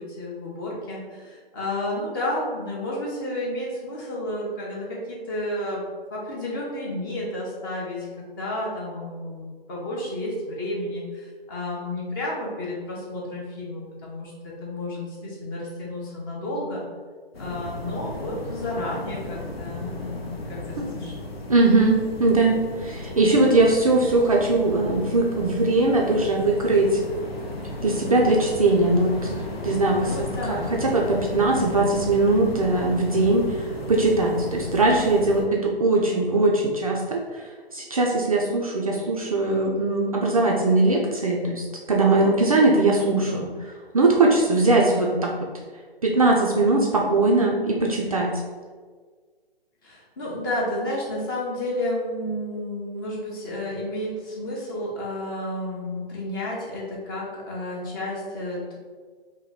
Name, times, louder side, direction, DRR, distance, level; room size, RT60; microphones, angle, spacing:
voice 1, 0.0-5.8 6.1-8.1 8.4-16.8 17.4-21.1 30.0-30.8 42.3-42.5 43.1-43.3 49.8-58.8, left 1 dB, 20° left, -4 dB, 0.6 m, -31 dB
sound 1, 17.3-35.4, left 2 dB, 75° left, 0.7 m, -35 dB
voice 2, 21.5-27.0 27.8-33.5 33.9-37.4 37.7-43.5 43.9-45.3 46.0-48.4, right 2 dB, 40° right, -1 dB, 0.4 m, -20 dB
2.8 x 2.6 x 3.8 m, 1.5 s
figure-of-eight pair, 130°, 30 cm